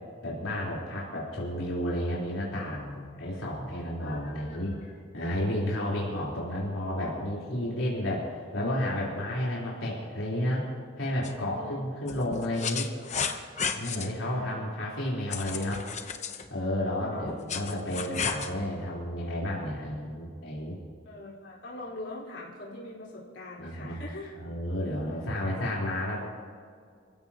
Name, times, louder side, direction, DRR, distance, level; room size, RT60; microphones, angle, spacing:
voice 1, 0.2-4.7 5.1-10.7 11.0-12.9 13.7-15.8 16.5-20.8 23.6-24.0 24.3-26.2, left 1 dB, 80° left, -6 dB, 4.1 m, -31 dB
voice 2, 4.0-4.9 9.3-9.9 11.5-11.8 13.7-14.5 17.1-17.3 21.0-24.3 25.1-25.9, left 2 dB, 60° left, -6 dB, 4.7 m, -44 dB
sound 1, 11.2-11.3 12.1-14.1 15.3-16.5 17.2-18.5, left 6 dB, 35° left, 1.0 m, -33 dB
28.5 x 15.5 x 3.0 m, 2.1 s
head